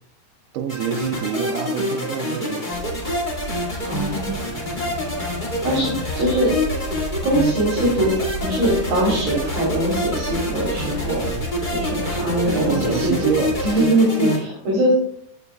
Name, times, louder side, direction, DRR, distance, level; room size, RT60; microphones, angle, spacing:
voice 1, 0.5-3.2 3.6-3.9 12.4-13.9, right 8 dB, 90° right, 2 dB, 2.9 m, -27 dB
sound 1, 0.7-14.4, left 1 dB, 45° left, 0.6 m, -27 dB
sound 2, 2.7-13.7, left 2 dB, 85° left, 2.5 m, -32 dB
voice 2, 3.8-4.3 5.6-6.5 7.2-13.1 13.6-14.9, right 1 dB, 60° right, -6 dB, 4.4 m, -22 dB
16.0 x 6.9 x 2.3 m, 0.69 s
omnidirectional pair, 4.8 m